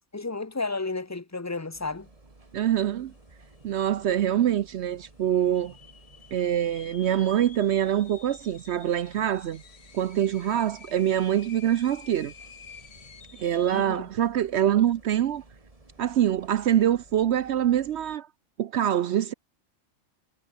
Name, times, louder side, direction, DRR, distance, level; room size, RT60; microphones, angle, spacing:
voice 1, 0.1-2.1 13.7-14.1, left 3 dB, 15° left, 0.9 m, -32 dB
sound 1, 1.7-18.2, right 2 dB, 25° right, 2.4 m, -55 dB
voice 2, 2.5-3.1 3.6-5.7 6.3-9.6 9.9-12.3 13.4-15.4 16.0-18.3 18.6-19.3, right 11 dB, 65° right, 0.8 m, -24 dB
sound 2, 3.1-3.2 3.4-4.0 4.5-4.6 5.3-14.1, left 6 dB, 55° left, 1.4 m, -50 dB
omnidirectional pair, 1.3 m